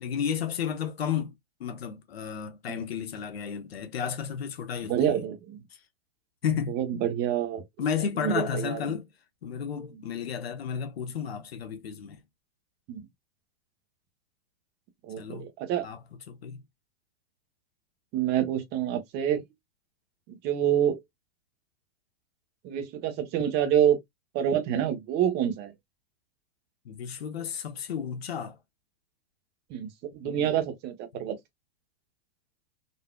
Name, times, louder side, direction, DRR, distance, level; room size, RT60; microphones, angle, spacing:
voice 1, 0.0-5.3 5.7-5.8 6.4-6.8 7.8-9.1 9.4-12.2 15.2-15.5 15.8-16.0 16.3-16.6 26.8-28.6 30.2-30.5 31.1-31.3, left 8 dB, 85° left, 1.1 m, -33 dB
voice 2, 4.9-5.6 6.7-7.6 8.2-8.8 12.9-13.0 15.0-15.8 18.1-19.4 20.3-21.0 22.6-24.0 24.3-25.7 29.7-31.4, right 10 dB, 35° right, 1.0 m, -27 dB
4.1 x 2.7 x 2.2 m
hypercardioid pair, 130°, 30 cm